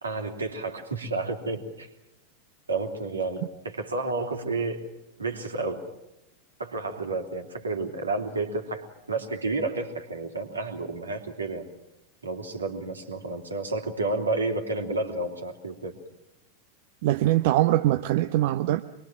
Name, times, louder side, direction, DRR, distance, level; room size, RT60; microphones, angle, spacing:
voice 1, 0.0-1.9 2.7-4.8 5.2-5.8 6.6-11.7 12.2-16.0, right 3 dB, 75° right, 3 dB, 3.4 m, -31 dB
voice 2, 17.0-18.8, right 14 dB, 50° right, 9 dB, 0.8 m, -22 dB
26.0 x 22.5 x 7.5 m, 0.92 s
figure-of-eight pair, 90°, 0 cm